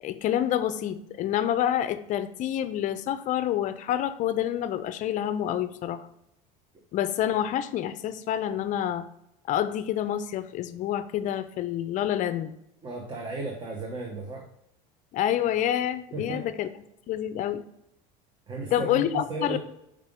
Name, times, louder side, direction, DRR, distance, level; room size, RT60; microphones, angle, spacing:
voice 1, 0.0-6.1 6.9-9.1 9.5-12.5 15.1-16.7 17.1-17.6 18.7-19.6, left 11 dB, 45° left, 13 dB, 0.5 m, -28 dB
voice 2, 12.8-14.4 16.1-16.5 18.5-19.6, right 2 dB, 25° right, 1 dB, 1.0 m, -34 dB
5.5 x 5.0 x 3.6 m, 0.81 s
supercardioid pair, 135°, 19 cm